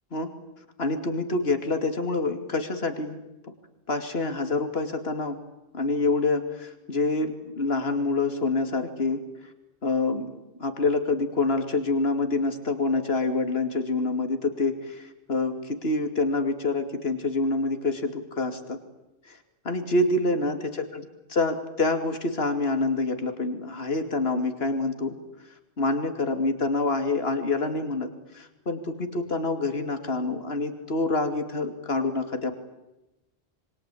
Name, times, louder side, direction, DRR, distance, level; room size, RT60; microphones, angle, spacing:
voice 1, 0.8-3.2 3.9-5.4 5.7-9.2 9.8-10.3 10.6-18.8 19.3-19.4 19.6-21.0 21.3-25.2 25.8-28.1 28.3-32.5, left 3 dB, 65° left, 7 dB, 2.9 m, -26 dB
27.5 x 23.5 x 8.4 m, 0.94 s
omnidirectional pair, 1.1 m